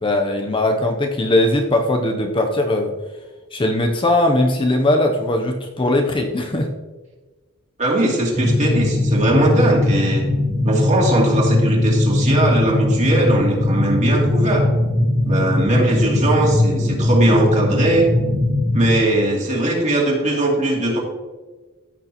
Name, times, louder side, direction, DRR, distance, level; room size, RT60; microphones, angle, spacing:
voice 1, 0.0-2.9 3.5-6.7 15.7-15.9, left 1 dB, 25° left, 3 dB, 0.7 m, -19 dB
voice 2, 7.8-10.2 10.6-14.7 15.3-18.1 18.7-21.0, right 1 dB, 35° right, -2 dB, 2.5 m, -19 dB
sound 1, 8.3-19.0, left 1 dB, ahead, 2.2 m, -19 dB
15.0 x 6.2 x 3.0 m, 1.3 s
head